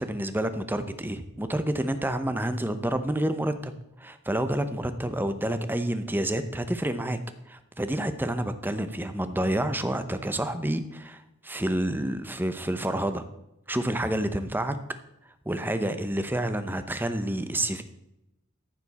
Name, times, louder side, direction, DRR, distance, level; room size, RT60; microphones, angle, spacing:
voice 1, 0.0-3.7 4.0-7.2 7.5-13.2 13.7-14.8 15.5-17.8, right 1 dB, 10° right, 10 dB, 0.7 m, -29 dB
14.0 x 7.0 x 4.2 m, 0.91 s
head